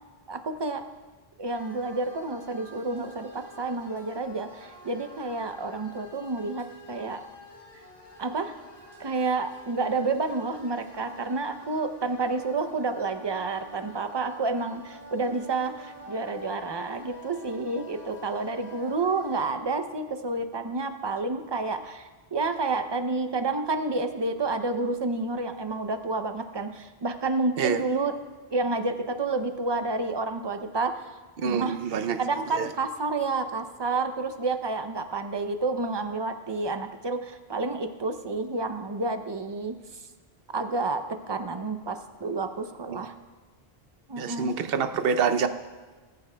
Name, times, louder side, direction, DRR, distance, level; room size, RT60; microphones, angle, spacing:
voice 1, 0.3-0.9 1.4-7.2 8.2-8.6 9.0-28.1 28.5-31.0 31.6-31.8 32.2-39.8 40.5-43.1 44.1-44.5, right 3 dB, 35° right, 8 dB, 0.5 m, -29 dB
sound 1, 1.5-19.4, left 1 dB, 40° left, 3.3 m, -48 dB
voice 2, 31.4-32.2 32.6-32.7 42.9-43.0 44.2-45.5, right 6 dB, 70° right, 10 dB, 0.8 m, -26 dB
19.5 x 9.3 x 2.2 m, 1.4 s
omnidirectional pair, 1.1 m